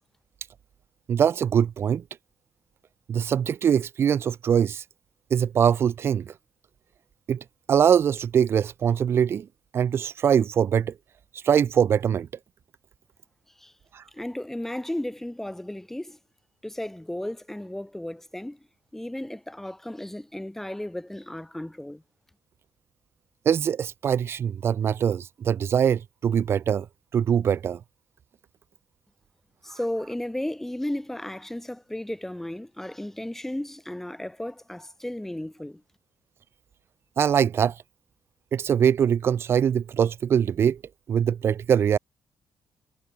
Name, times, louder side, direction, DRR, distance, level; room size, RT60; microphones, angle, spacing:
voice 1, 1.1-2.0 3.1-4.8 5.3-6.3 7.3-9.5 9.7-10.9 11.3-12.3 13.9-14.0 23.4-26.9 27.1-27.8 37.2-37.8 38.5-40.8 41.1-42.0, right 8 dB, 55° right, 1.7 m, -23 dB
voice 2, 14.1-16.2 16.6-18.6 18.9-22.0 29.6-35.8, left 1 dB, 5° left, 5.4 m, -34 dB
cardioid pair, 90°, 5 cm